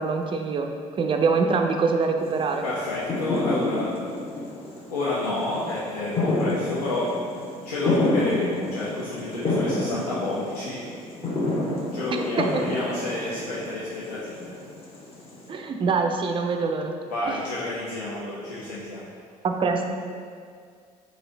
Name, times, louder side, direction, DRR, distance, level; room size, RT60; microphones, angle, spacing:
voice 1, 0.0-2.6 12.1-12.6 15.5-16.9 19.4-19.8, right 4 dB, 25° right, 4 dB, 0.4 m, -24 dB
sound 1, 2.2-15.5, left 2 dB, 30° left, 0.8 m, -29 dB
voice 2, 2.6-3.9 4.9-7.1 7.6-10.8 11.9-14.5 17.1-19.1, left 2 dB, 80° left, -8 dB, 0.5 m, -29 dB
3.1 x 2.6 x 3.8 m, 2.1 s
figure-of-eight pair, 50°, 20 cm